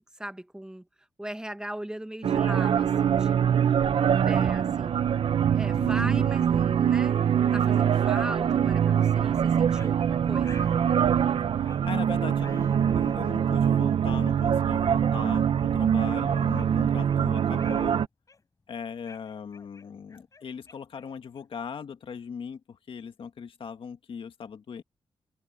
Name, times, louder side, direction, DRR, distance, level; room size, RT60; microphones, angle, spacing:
voice 1, 0.1-3.7 4.2-5.2 5.5-7.2 7.5-10.7, right 1 dB, 10° right, 1.3 m, -39 dB
sound 1, 2.2-18.1, right 8 dB, 70° right, 0.7 m, -24 dB
voice 2, 5.8-6.3 11.6-18.0 18.7-24.8, left 6 dB, 70° left, 1.7 m, -39 dB
sound 2, 8.1-8.3 9.0-9.2 9.7-9.9 10.4-11.0 11.6-11.9 12.4-13.3 14.0-14.1 14.8-15.0 15.5-15.6 16.2-17.2 17.6-17.9 18.3-18.6 19.1-21.6, left 4 dB, 35° left, 4.2 m, -52 dB
wide cardioid pair, 125°, 10 cm